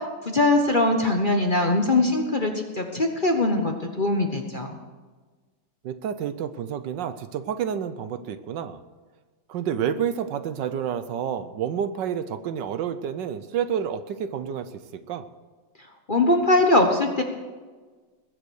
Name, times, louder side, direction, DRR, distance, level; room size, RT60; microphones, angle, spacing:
voice 1, 0.0-4.7 16.1-17.2, left 2 dB, 30° left, 3 dB, 1.0 m, -22 dB
voice 2, 5.8-8.8 9.5-14.7 15.1-15.3, right 8 dB, 70° right, 11 dB, 1.3 m, -29 dB
20.5 x 8.0 x 6.4 m, 1.4 s
omnidirectional pair, 2.1 m